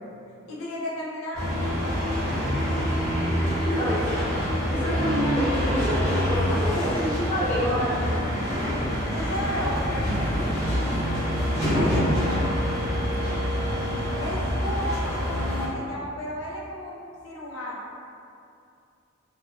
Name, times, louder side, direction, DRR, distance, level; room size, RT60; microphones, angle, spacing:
voice 1, 0.4-3.1 6.7-7.3 9.1-11.0 11.6-12.9 14.1-17.8, left 1 dB, 85° left, -4 dB, 0.5 m, -34 dB
sound 1, 1.3-15.7, equal, 35° left, 1.1 m, -26 dB
voice 2, 3.6-4.2 4.7-7.0 7.3-8.3, equal, 10° left, -13 dB, 0.9 m, -27 dB
Wind instrument woodwind instrument, 9.9-14.4, equal, 60° right, 0.3 m, -37 dB
2.6 x 2.4 x 2.5 m, 2.5 s
head